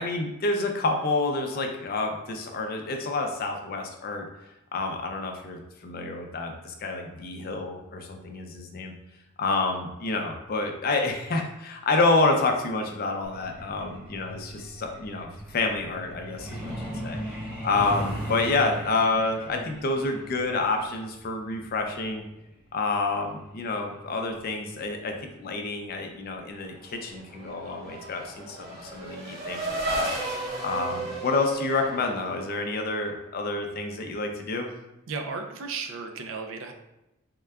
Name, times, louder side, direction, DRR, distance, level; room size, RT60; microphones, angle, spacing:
voice 1, 0.0-4.2 4.7-8.9 9.4-17.2 17.6-22.2 22.7-30.1 30.6-34.7, left 3 dB, 45° left, 3 dB, 0.5 m, -28 dB
Truck, 13.2-25.5 26.8-26.9 27.3-27.5 27.9-28.2 28.5-28.6 29.0-29.1, right 1 dB, 5° right, 1.0 m, -39 dB
Race car auto racing / Accelerating revving vroom, 26.8-32.9, right 2 dB, 50° right, 0.8 m, -34 dB
voice 2, 35.1-36.7, right 4 dB, 65° right, 5 dB, 0.4 m, -34 dB
3.6 x 2.2 x 3.4 m, 0.92 s
head